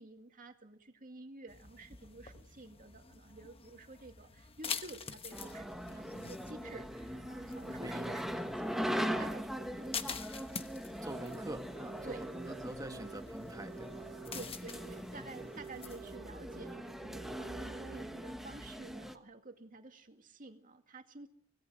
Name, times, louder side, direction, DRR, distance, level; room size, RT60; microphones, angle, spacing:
voice 1, 0.0-10.2 12.0-12.3 14.3-21.3, right 3 dB, 40° right, 6 dB, 2.2 m, -51 dB
sound 1, 1.5-16.2, left 6 dB, 30° left, 1.1 m, -47 dB
sound 2, 5.3-19.2, equal, ahead, 1.2 m, -41 dB
voice 2, 7.8-8.2 11.0-14.0, right 1 dB, 15° right, 7 dB, 1.5 m, -45 dB
sound 3, 11.1-11.5 11.7-13.3 13.5-15.1 15.3-16.9 17.1-18.1, right 9 dB, 60° right, 1.4 m, -51 dB
25.5 x 17.5 x 6.3 m, 0.65 s
head